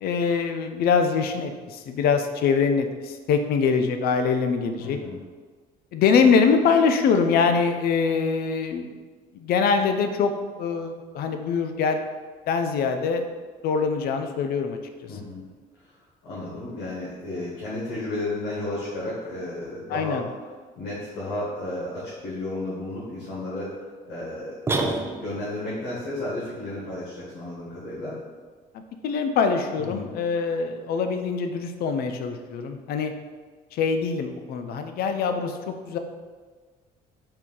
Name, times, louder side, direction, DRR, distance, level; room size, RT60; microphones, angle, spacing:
voice 1, 0.0-5.0 5.9-8.9 9.3-10.3 10.6-12.0 12.5-13.3 13.6-14.8 19.9-20.2 29.0-33.1 33.7-36.0, left 5 dB, 65° left, 7 dB, 0.4 m, -23 dB
voice 2, 4.8-5.1 15.1-15.4 15.8-15.9 16.2-20.2 20.8-23.7 24.0-24.6 25.2-28.2 29.8-30.1, left 2 dB, 80° left, -8 dB, 1.2 m, -33 dB
sound 1, 24.7-25.6, right 2 dB, 15° right, 0.4 m, -27 dB
4.4 x 2.6 x 3.7 m, 1.5 s
cardioid pair, 110°, 17 cm